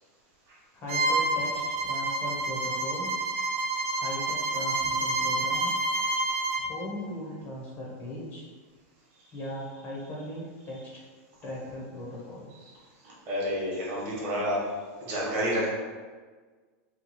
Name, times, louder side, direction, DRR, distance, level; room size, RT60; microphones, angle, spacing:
voice 1, 0.7-3.1 3.9-5.7 6.6-8.5 9.3-11.0 11.4-12.5, left 1 dB, 25° left, -4 dB, 0.6 m, -38 dB
Bowed string instrument, 0.9-6.7, right 2 dB, 70° right, 0.6 m, -28 dB
voice 2, 13.0-14.6 15.0-15.7, equal, 35° right, -5 dB, 1.0 m, -29 dB
2.9 x 2.2 x 3.9 m, 1.5 s
supercardioid pair, 165°, 8 cm